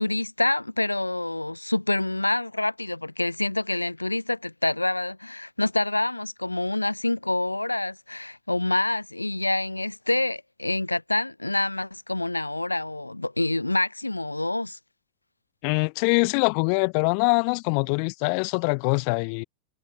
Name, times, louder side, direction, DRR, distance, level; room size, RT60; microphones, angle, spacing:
voice 1, 0.0-14.8, left 2 dB, 85° left, 5.1 m, -27 dB
voice 2, 15.6-19.4, left 40 dB or more, 45° left, 7.3 m, -23 dB
figure-of-eight pair, 90°, 0 cm